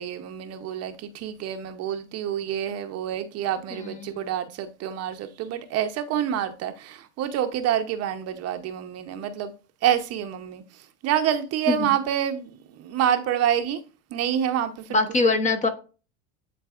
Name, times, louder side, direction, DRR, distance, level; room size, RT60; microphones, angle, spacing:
voice 1, 0.0-9.5 9.8-10.6 11.0-13.8 14.1-15.0, right 10 dB, 45° right, 0.8 m, -27 dB
voice 2, 3.7-4.3 11.7-11.9 14.9-15.7, left 3 dB, 20° left, 0.9 m, -23 dB
10.0 x 4.0 x 2.4 m
supercardioid pair, 130°, 35 cm